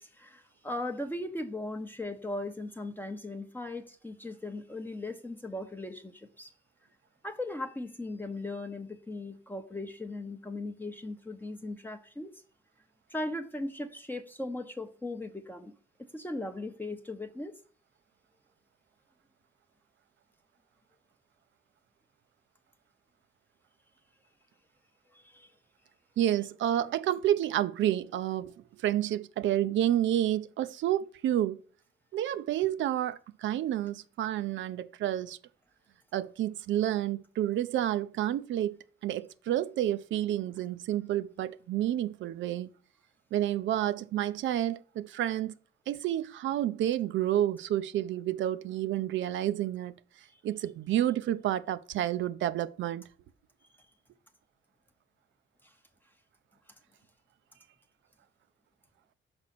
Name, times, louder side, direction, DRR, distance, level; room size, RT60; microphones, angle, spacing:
voice 1, 0.0-6.5 7.2-12.3 13.1-15.7 16.1-17.6 25.1-25.5 50.3-50.4 55.6-55.7, left 2 dB, 10° left, 0.7 m, -38 dB
voice 2, 26.2-31.6 32.1-35.4 36.1-42.7 43.3-45.5 45.9-49.9 50.4-53.1, right 12 dB, 70° right, 0.5 m, -30 dB
6.1 x 4.8 x 4.1 m
cardioid pair, 90°, 20 cm